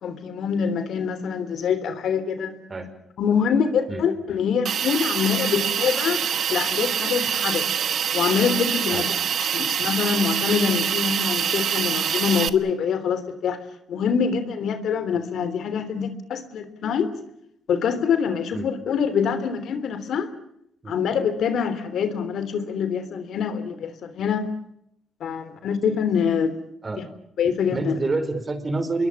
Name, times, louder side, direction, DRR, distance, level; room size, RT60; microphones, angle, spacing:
voice 1, 0.0-2.5 3.2-6.2 6.5-7.7 8.1-9.1 9.4-13.6 13.9-17.1 17.7-20.3 20.9-24.5 25.2-26.6 27.4-28.0, left 7 dB, 70° left, 11 dB, 3.2 m, -25 dB
Hiss, 4.7-12.5, right 8 dB, 60° right, 1.4 m, -25 dB
voice 2, 27.7-29.1, right 3 dB, 30° right, 10 dB, 4.7 m, -27 dB
27.5 x 22.0 x 7.2 m, 0.76 s
cardioid pair, 90°, 0 cm